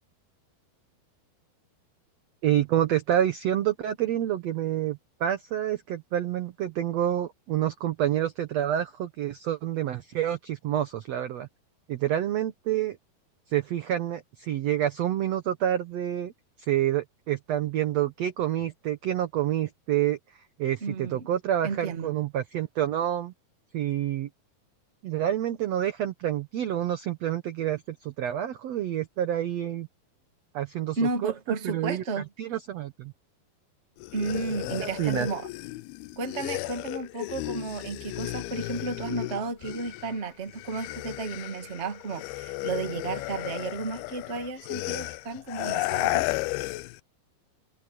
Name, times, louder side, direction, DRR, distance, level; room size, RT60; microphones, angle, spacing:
voice 1, 2.4-11.5 11.9-13.0 13.5-16.3 16.7-20.2 20.6-23.3 23.7-24.3 25.0-29.9 30.5-31.3 31.6-33.1 34.8-35.3, right 11 dB, 80° right, 1.5 m, -28 dB
voice 2, 20.8-21.3 21.6-22.1 30.9-32.3 34.1-35.5 36.1-46.4, right 4 dB, 30° right, 1.3 m, -33 dB
sound 1, 34.0-40.2 40.5-47.0, left 20 dB, 85° left, 2.4 m, -34 dB
omnidirectional pair, 4.5 m